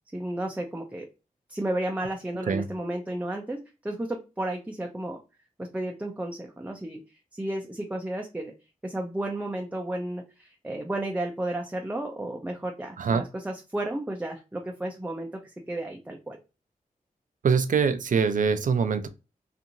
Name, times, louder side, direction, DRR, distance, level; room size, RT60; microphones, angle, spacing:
voice 1, 0.1-1.1 1.5-5.2 5.6-7.0 7.3-8.5 8.8-16.4, right 1 dB, 10° right, 2 dB, 0.5 m, -33 dB
voice 2, 17.4-19.1, right 6 dB, 60° right, 9 dB, 0.5 m, -23 dB
2.9 x 2.5 x 2.5 m, 0.30 s
cardioid pair, 60°, 15 cm